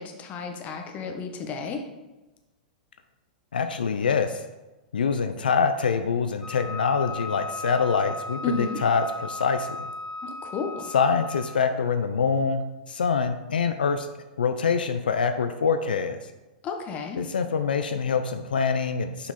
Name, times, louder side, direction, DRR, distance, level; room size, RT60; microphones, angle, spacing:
voice 1, 0.0-1.9 8.4-8.8 10.2-10.9 16.6-17.2, left 4 dB, 30° left, 4 dB, 1.1 m, -32 dB
voice 2, 3.5-4.4 4.9-9.9 10.9-14.1 14.4-16.2 17.2-19.3, left 5 dB, 85° left, 8 dB, 0.5 m, -25 dB
Wind instrument woodwind instrument, 6.4-11.6, left 3 dB, 15° left, 0.8 m, -36 dB
6.0 x 5.6 x 4.1 m, 1.1 s
hypercardioid pair, 115°, 5 cm